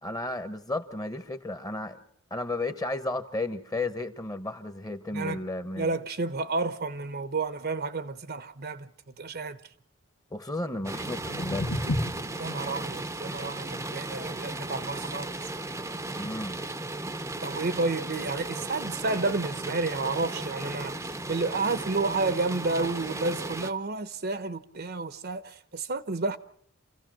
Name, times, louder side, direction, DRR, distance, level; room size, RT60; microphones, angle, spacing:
voice 1, 0.0-2.0 2.3-5.9 10.3-11.7 16.1-16.6, left 2 dB, 15° left, 1.2 m, -33 dB
voice 2, 5.8-9.7 12.4-15.5 17.4-26.4, right 3 dB, 50° right, 0.9 m, -31 dB
sound 1, 10.8-16.8, left 1 dB, 60° left, 1.9 m, -36 dB
sound 2, 10.8-23.7, right 2 dB, 15° right, 0.8 m, -36 dB
28.0 x 15.0 x 7.6 m
head